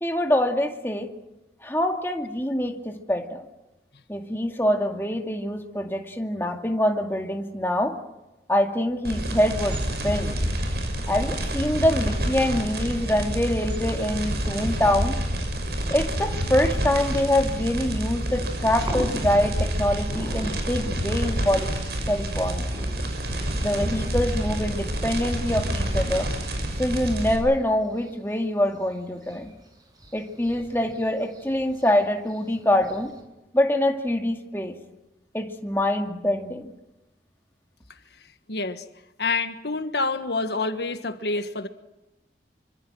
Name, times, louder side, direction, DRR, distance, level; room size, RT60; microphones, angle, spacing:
voice 1, 0.0-1.1 1.6-3.4 4.1-8.0 8.5-10.4 11.1-15.1 15.9-21.7 22.1-22.7 23.6-26.3 26.8-29.5 30.1-33.1 33.5-34.7 35.3-36.7, left 1 dB, 15° left, 3 dB, 2.2 m, -25 dB
sound 1, 9.0-27.4, right 1 dB, 70° right, 6.5 m, -28 dB
sound 2, 18.3-33.2, equal, 20° right, 7.1 m, -43 dB
voice 2, 38.5-38.8 39.2-41.7, left 3 dB, 75° left, 9 dB, 1.5 m, -27 dB
26.5 x 25.5 x 6.2 m, 0.99 s
head